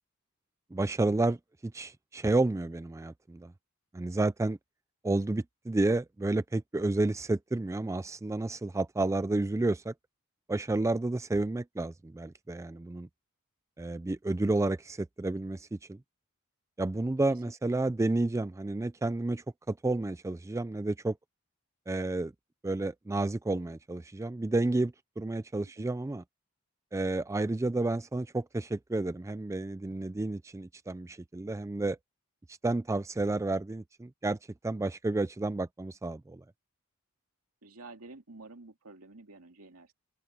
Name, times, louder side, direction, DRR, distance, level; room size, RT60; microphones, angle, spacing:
voice 1, 0.7-3.5 3.9-4.6 5.0-9.9 10.5-13.1 13.8-16.0 16.8-21.2 21.9-22.3 22.6-26.2 26.9-32.0 32.5-34.4 34.6-36.4, right 2 dB, 15° right, 0.3 m, -31 dB
voice 2, 37.6-39.9, right 3 dB, 75° right, 2.6 m, -50 dB
open air
head